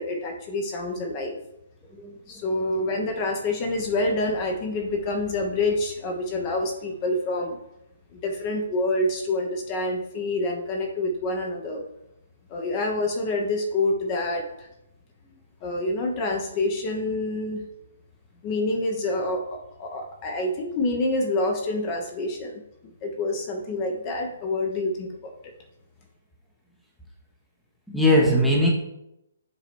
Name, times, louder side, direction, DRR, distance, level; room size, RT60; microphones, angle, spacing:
voice 1, 0.0-1.4 2.3-7.6 8.1-11.8 12.5-14.7 15.6-17.6 18.4-22.6 23.0-25.3, left 2 dB, 25° left, 2 dB, 1.0 m, -27 dB
voice 2, 27.9-28.7, left 1 dB, ahead, -3 dB, 1.0 m, -20 dB
7.2 x 4.0 x 4.6 m, 0.85 s
hypercardioid pair, 160°, 0 cm